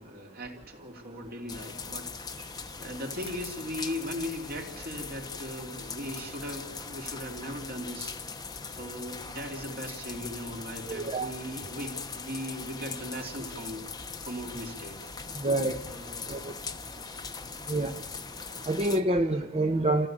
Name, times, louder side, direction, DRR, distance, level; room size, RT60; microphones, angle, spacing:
voice 1, 0.0-2.5 2.8-8.1 8.7-13.9 14.2-15.1 15.9-16.5, equal, 50° right, 2 dB, 3.2 m, -38 dB
sound 1, 1.5-19.0, left 5 dB, 20° left, 1.0 m, -40 dB
voice 2, 10.9-11.3 15.4-15.8 16.3-16.5 17.7-17.9 18.6-20.1, right 2 dB, 30° right, 5 dB, 1.0 m, -27 dB
28.0 x 15.5 x 8.9 m, 1.2 s
head